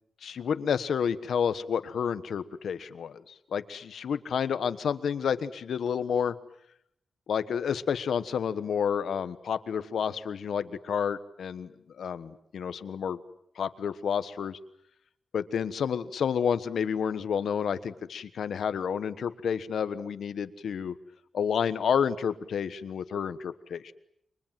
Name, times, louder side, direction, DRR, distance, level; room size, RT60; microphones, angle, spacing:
voice 1, 0.2-6.3 7.3-11.7 12.0-13.2 13.6-14.6 15.3-20.9 21.3-23.9, left 7 dB, 75° left, 13 dB, 1.3 m, -30 dB
29.5 x 25.0 x 7.6 m, 0.74 s
wide cardioid pair, 175°, 0 cm